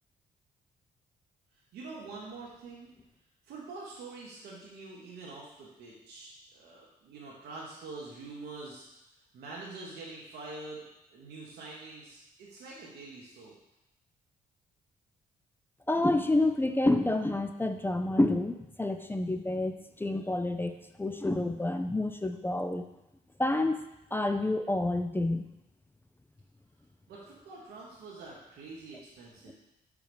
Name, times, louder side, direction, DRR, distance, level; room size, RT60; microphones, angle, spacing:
voice 1, 1.5-2.9 3.4-9.1 9.3-13.6 27.1-29.5, right 3 dB, 80° right, -5 dB, 1.2 m, -45 dB
voice 2, 15.9-22.8 23.4-23.8 24.1-25.5, left 2 dB, 15° left, 6 dB, 0.5 m, -28 dB
4.9 x 4.9 x 5.1 m, 0.89 s
supercardioid pair, 65°, 17 cm